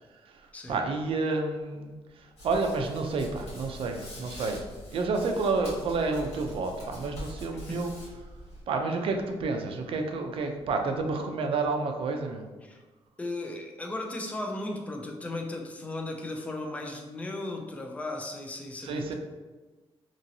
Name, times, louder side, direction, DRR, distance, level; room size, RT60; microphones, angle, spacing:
voice 1, 0.7-2.0 2.4-4.6 4.9-7.9 8.7-12.5 18.8-19.1, right 3 dB, 60° right, 4 dB, 0.4 m, -29 dB
Hands, 2.4-8.6, equal, 75° left, 1.4 m, -44 dB
voice 2, 13.2-19.1, left 2 dB, 15° left, 2 dB, 0.3 m, -36 dB
2.9 x 2.6 x 2.7 m, 1.3 s
wide cardioid pair, 170°, 11 cm